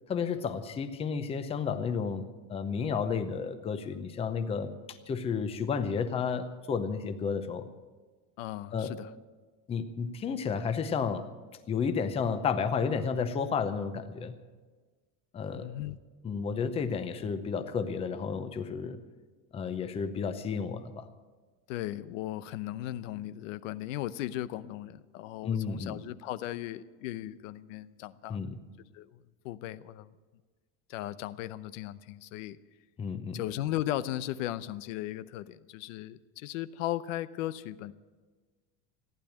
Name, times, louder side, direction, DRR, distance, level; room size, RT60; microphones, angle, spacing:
voice 1, 0.1-7.7 8.7-8.9 9.7-11.3 11.7-14.3 15.3-15.7 16.2-19.0 19.5-21.1 25.4-26.0 28.3-28.6 33.0-33.4, left 6 dB, 15° left, 9 dB, 0.7 m, -32 dB
voice 2, 8.4-9.1 15.5-16.0 21.7-28.4 28.9-29.2 29.4-30.1 30.9-32.6 33.3-37.9, left 14 dB, 90° left, 14 dB, 0.8 m, -37 dB
15.0 x 10.5 x 8.6 m, 1.4 s
cardioid pair, 170°, 38 cm